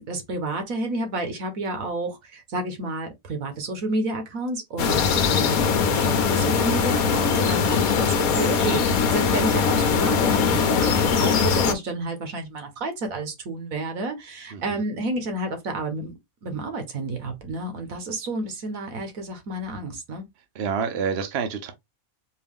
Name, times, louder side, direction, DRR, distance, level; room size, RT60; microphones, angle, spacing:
voice 1, 0.0-20.2, right 2 dB, 75° right, 1.5 m, -30 dB
sound 1, 4.8-11.7, left 6 dB, 90° left, 1.2 m, -21 dB
voice 2, 5.1-5.4 14.5-14.8 20.5-21.7, right 6 dB, 55° right, 0.9 m, -29 dB
4.5 x 2.7 x 3.5 m
omnidirectional pair, 1.5 m